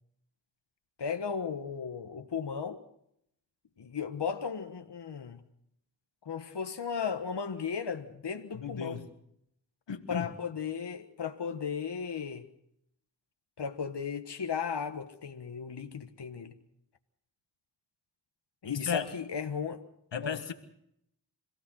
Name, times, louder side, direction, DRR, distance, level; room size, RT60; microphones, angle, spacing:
voice 1, 1.0-2.8 3.8-5.4 6.2-9.0 10.1-12.5 13.6-16.5 18.6-19.8 20.2-20.4, left 6 dB, 70° left, 1.4 m, -35 dB
voice 2, 8.5-9.1 9.9-10.3 18.6-19.1 20.1-20.5, left 7 dB, 85° left, 1.6 m, -35 dB
26.5 x 16.5 x 6.4 m
wide cardioid pair, 55°, 43 cm